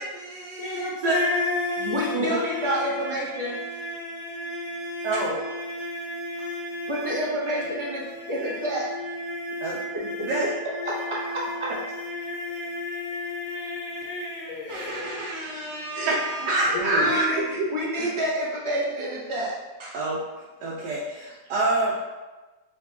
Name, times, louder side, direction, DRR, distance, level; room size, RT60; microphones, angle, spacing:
voice 1, 0.0-1.2 1.8-2.4 5.0-5.4 9.6-9.8 10.2-10.5 16.1-16.2 16.5-17.3 18.0-18.1 19.9-20.2 20.6-22.2, right 2 dB, 85° right, -6 dB, 1.3 m, -26 dB
voice 2, 0.6-15.1 16.7-17.1, left 2 dB, 60° left, -3 dB, 1.1 m, -33 dB
voice 3, 1.9-3.6 6.9-8.9 9.9-10.0 10.8-10.9 11.3-11.7 14.7-19.5 19.8-19.9, right 1 dB, 55° right, -5 dB, 0.3 m, -29 dB
4.3 x 3.5 x 2.8 m, 1.2 s
omnidirectional pair, 1.8 m